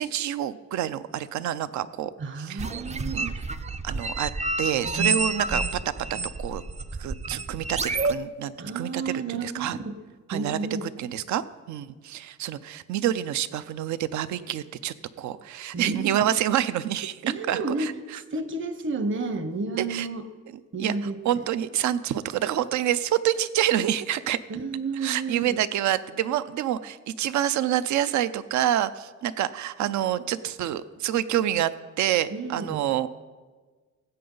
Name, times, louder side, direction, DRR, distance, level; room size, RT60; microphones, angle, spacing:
voice 1, 0.0-2.1 2.4-2.6 3.1-3.3 3.8-4.3 4.6-5.8 6.1-6.6 7.0-9.8 10.3-17.2 17.5-17.9 19.8-20.1 20.8-20.9 21.2-24.4 25.0-33.1, right 11 dB, 70° right, 15 dB, 0.5 m, -27 dB
voice 2, 2.2-3.3 8.6-10.0 10.3-11.0 15.7-16.3 17.2-17.9 18.3-20.3 20.7-21.2 24.5-25.6 32.3-32.8, right 3 dB, 40° right, 10 dB, 1.0 m, -31 dB
sound 1, 2.6-8.1, right 3 dB, 25° right, 0.4 m, -29 dB
16.0 x 7.8 x 3.9 m, 1.4 s
cardioid pair, 90°, 30 cm